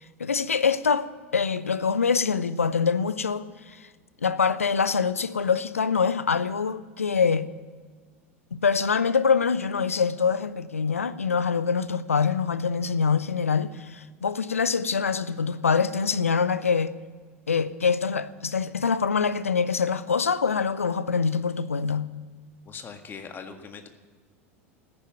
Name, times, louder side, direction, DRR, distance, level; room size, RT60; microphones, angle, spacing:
voice 1, 0.2-1.1 1.3-3.9 4.2-7.5 8.5-16.9 17.5-22.1, left 5 dB, 85° left, 0.7 m, -24 dB
voice 2, 22.7-23.9, left 6 dB, 30° left, 1.8 m, -41 dB
14.5 x 10.5 x 9.4 m
figure-of-eight pair, 80°, 7 cm